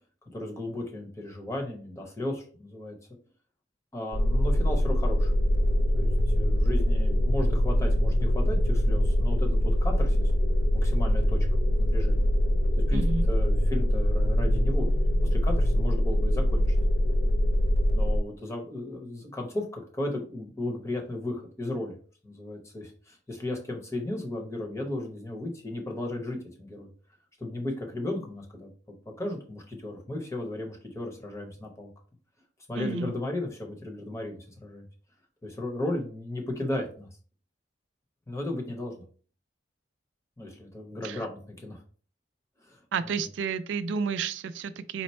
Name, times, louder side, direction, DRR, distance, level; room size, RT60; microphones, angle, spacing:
voice 1, 0.3-3.0 3.9-5.3 5.9-6.1 6.4-10.3 10.7-11.5 11.8-12.3 12.9-14.9 15.3-16.7 17.9-26.9 27.4-28.7 29.2-31.9 32.7-34.8 35.4-37.1 38.3-39.0 40.4-41.8 42.6-42.8, left 1 dB, 15° left, 1 dB, 0.8 m, -35 dB
sound 1, 4.1-18.2, equal, 60° left, 0.4 m, -23 dB
sound 2, 5.9-15.9, equal, 5° right, 0.5 m, -40 dB
voice 2, 12.9-13.2 32.8-33.1 41.0-41.3 42.9-45.0, right 5 dB, 75° right, 12 dB, 0.3 m, -31 dB
4.2 x 2.0 x 4.2 m, 0.42 s
head